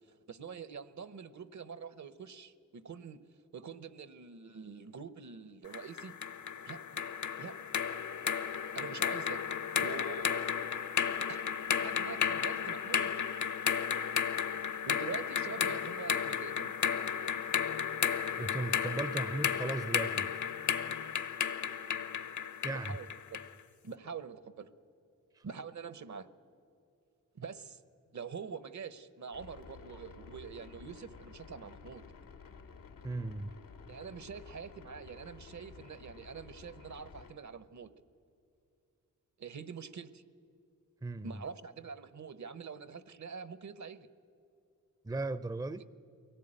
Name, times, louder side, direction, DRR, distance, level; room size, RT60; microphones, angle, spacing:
voice 1, 0.3-3.2 3.5-6.1 6.6-7.0 7.4-7.6 8.7-9.4 9.8-10.4 11.3-11.4 11.7-13.1 14.9-16.7 22.7-23.4 23.8-24.7 25.4-26.3 27.3-27.8 28.1-32.0 33.9-37.9 39.4-40.2 41.2-44.1, right 6 dB, 55° right, 14 dB, 1.0 m, -45 dB
sound 1, 5.7-23.5, left 7 dB, 60° left, 1.0 m, -33 dB
voice 2, 18.4-20.3 22.6-23.0 25.4-25.5 33.0-33.5 41.0-41.4 45.0-45.8, right 2 dB, 10° right, 15 dB, 0.6 m, -37 dB
sound 2, 29.3-37.3, left 5 dB, 80° left, 1.3 m, -53 dB
23.0 x 17.0 x 9.0 m, 2.5 s
cardioid pair, 50°, 33 cm